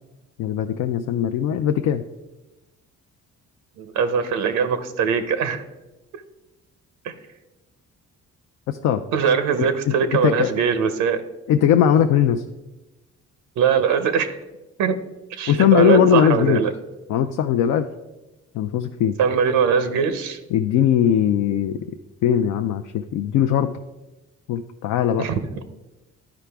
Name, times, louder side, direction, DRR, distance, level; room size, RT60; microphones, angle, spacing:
voice 1, 0.4-2.0 8.7-9.0 9.9-10.5 11.5-12.4 15.5-16.6 17.1-17.9 18.5-19.2 20.5-21.8 22.2-23.8 24.5-25.3, left 9 dB, 75° left, 7 dB, 0.5 m, -19 dB
voice 2, 3.8-5.6 7.0-7.1 9.1-11.2 13.6-14.3 14.8-15.0 15.3-16.7 19.2-20.4 25.2-25.4, right 6 dB, 90° right, 10 dB, 0.7 m, -21 dB
11.5 x 4.9 x 3.4 m, 1.0 s
cardioid pair, 90°, 30 cm